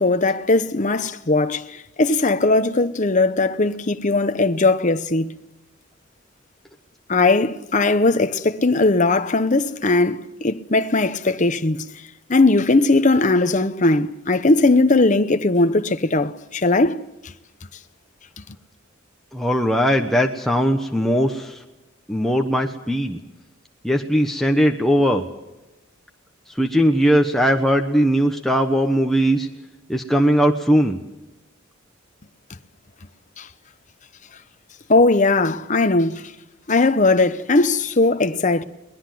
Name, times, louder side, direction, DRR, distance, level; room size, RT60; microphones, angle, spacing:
voice 1, 0.0-5.3 7.1-11.8 12.3-17.0 33.4-33.5 34.9-36.3 36.7-38.6, left 2 dB, 35° left, 0.9 m, -18 dB
voice 2, 19.3-21.6 22.1-23.2 23.8-25.2 26.6-29.5 29.9-31.0, equal, ahead, 1.1 m, -19 dB
22.5 x 20.0 x 7.8 m
head